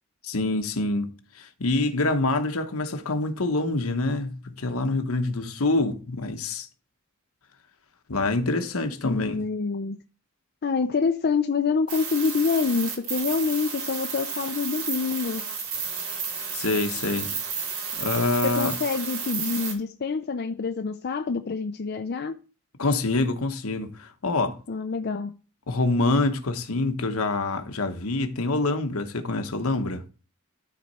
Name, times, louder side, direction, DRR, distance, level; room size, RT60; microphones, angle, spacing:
voice 1, 0.2-6.7 8.1-9.4 16.5-17.4 17.9-18.7 22.8-24.6 25.7-30.0, left 2 dB, 80° left, 1.1 m, -26 dB
voice 2, 9.0-10.0 10.6-15.4 18.4-22.4 24.7-25.3, left 5 dB, 50° left, 0.5 m, -26 dB
sound 1, 11.9-19.7, right 6 dB, 85° right, 3.2 m, -32 dB
12.5 x 4.3 x 4.2 m
head